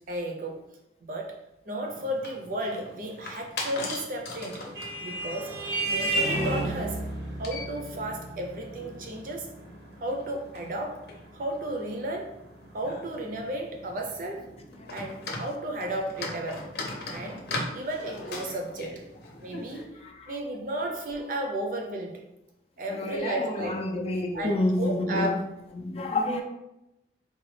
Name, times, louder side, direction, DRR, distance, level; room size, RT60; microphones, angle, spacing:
voice 1, 0.1-0.7 1.0-1.4 1.7-4.6 5.0-5.6 5.9-7.0 7.4-9.6 10.0-11.1 11.3-12.3 12.7-14.5 14.9-16.7 17.1-17.5 17.7-19.0 19.4-22.2 22.8-23.8 24.3-25.4 26.2-26.4, right 1 dB, 50° right, 2 dB, 0.5 m, -33 dB
sound 1, 1.9-19.8, left 2 dB, 65° left, 0.7 m, -41 dB
Vehicle horn car horn honking, 4.1-13.1, right 2 dB, 90° right, 1.0 m, -34 dB
voice 2, 22.9-25.4 25.8-26.4, left 1 dB, 35° left, 3 dB, 0.4 m, -28 dB
3.8 x 2.3 x 3.2 m, 0.89 s
head